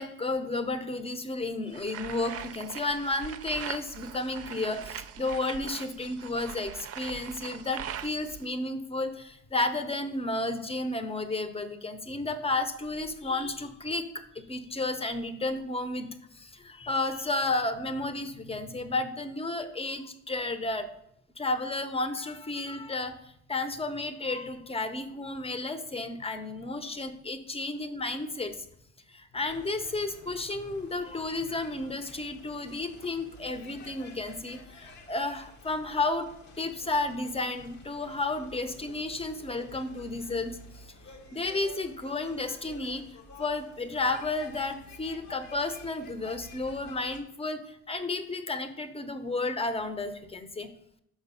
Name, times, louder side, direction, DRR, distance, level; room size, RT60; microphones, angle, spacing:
voice 1, 0.0-14.1 14.3-16.1 16.3-20.9 21.4-28.7 29.1-36.3 36.6-40.8 41.3-43.0 43.4-50.7, left 2 dB, 20° left, 10 dB, 0.8 m, -32 dB
sound 1, 1.7-8.5, right 9 dB, 50° right, 0.5 m, -41 dB
sound 2, 29.5-47.2, left 2 dB, 65° left, 1.2 m, -50 dB
6.0 x 4.8 x 5.6 m, 0.73 s
cardioid pair, 90°, 30 cm